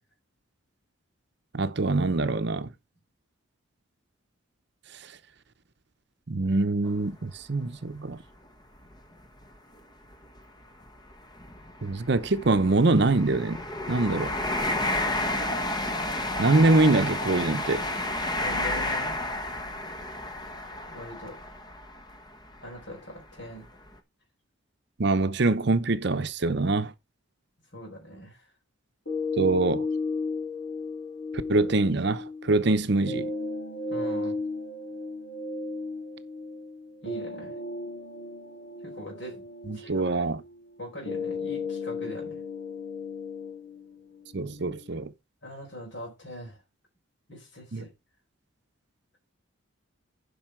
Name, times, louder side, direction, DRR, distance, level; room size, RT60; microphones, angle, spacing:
voice 1, 1.5-2.7 6.3-8.2 11.8-13.6 13.9-14.3 16.4-17.8 25.0-26.9 29.4-29.9 31.5-33.3 39.7-40.4 44.3-45.1 47.7-47.8, right 3 dB, 55° right, 0.7 m, -24 dB
sound 1, 6.9-7.0 7.6-7.7 8.9-9.0 9.2-9.4 10.1-22.8 23.4-23.6, left 1 dB, 20° left, 1.1 m, -31 dB
voice 2, 18.4-19.2 20.9-21.4 22.6-23.7 27.7-28.5 33.9-34.4 37.0-37.6 38.8-39.5 39.7-40.2 40.8-42.4 45.4-46.6 47.3-47.9, equal, 60° left, 4.4 m, -42 dB
sound 2, 29.1-45.1, left 3 dB, 75° left, 4.1 m, -35 dB
11.0 x 5.6 x 4.5 m
head